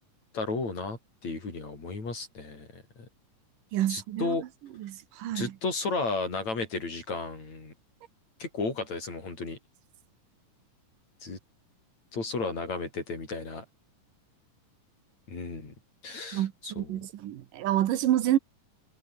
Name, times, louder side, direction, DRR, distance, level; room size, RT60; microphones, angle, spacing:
voice 1, 0.3-3.1 3.9-4.4 5.3-7.7 8.4-9.6 11.2-11.4 12.1-13.6 15.3-15.7 16.0-17.1, left 3 dB, 55° left, 7.8 m, -34 dB
voice 2, 3.7-4.4 4.8-5.5 16.3-18.4, right 12 dB, 75° right, 2.9 m, -28 dB
omnidirectional pair, 3.9 m